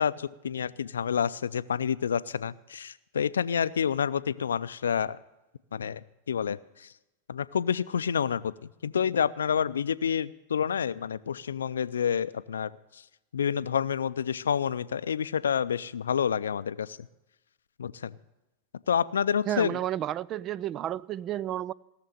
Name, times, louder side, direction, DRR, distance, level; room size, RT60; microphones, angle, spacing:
voice 1, 0.0-5.2 5.7-6.9 7.3-13.0 13.3-17.1 17.8-18.2 18.9-19.8, left 7 dB, 85° left, 0.5 m, -29 dB
voice 2, 19.5-21.7, right 12 dB, 40° right, 0.4 m, -31 dB
17.5 x 6.8 x 9.2 m
hypercardioid pair, 100°, 0 cm